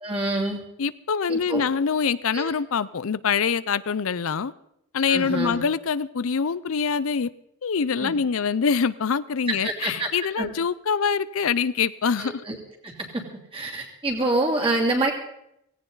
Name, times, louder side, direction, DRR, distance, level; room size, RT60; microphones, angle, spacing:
voice 1, 0.0-0.6 1.3-1.6 2.3-2.5 5.1-5.6 8.0-8.1 9.5-10.1 10.4-10.5 12.2-12.5 12.8-13.2 13.5-15.1, right 2 dB, 25° right, 2.9 m, -26 dB
voice 2, 0.8-4.5 4.9-7.3 7.6-12.4, left 6 dB, 75° left, 0.6 m, -24 dB
17.5 x 16.5 x 4.0 m
head